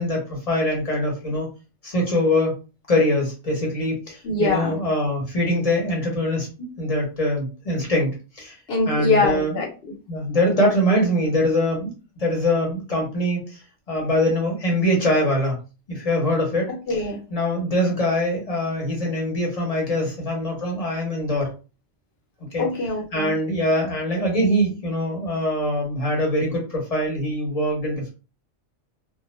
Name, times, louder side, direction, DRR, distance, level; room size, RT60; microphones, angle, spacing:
voice 1, 0.0-1.5 1.8-2.5 2.9-8.6 8.9-9.6 10.1-11.9 12.2-13.6 13.9-15.6 15.9-16.7 17.3-21.5 22.5-22.7 23.1-28.1, left 1 dB, 35° left, -1 dB, 0.9 m, -23 dB
voice 2, 4.2-4.8 8.7-9.9 16.9-17.2 22.6-23.4, left 3 dB, 60° left, 0 dB, 1.0 m, -23 dB
2.3 x 2.0 x 3.1 m, 0.33 s
omnidirectional pair, 1.2 m